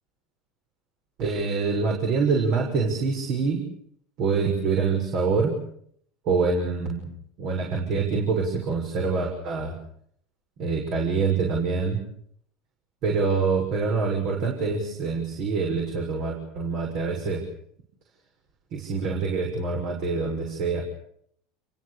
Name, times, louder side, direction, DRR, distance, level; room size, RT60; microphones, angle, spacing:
voice 1, 1.2-3.6 4.2-5.5 6.2-7.1 7.4-9.8 10.6-12.0 13.0-17.4 18.7-20.8, right 4 dB, 55° right, 1 dB, 6.5 m, -25 dB
29.0 x 23.0 x 6.8 m, 0.67 s
hypercardioid pair, 85°, 0 cm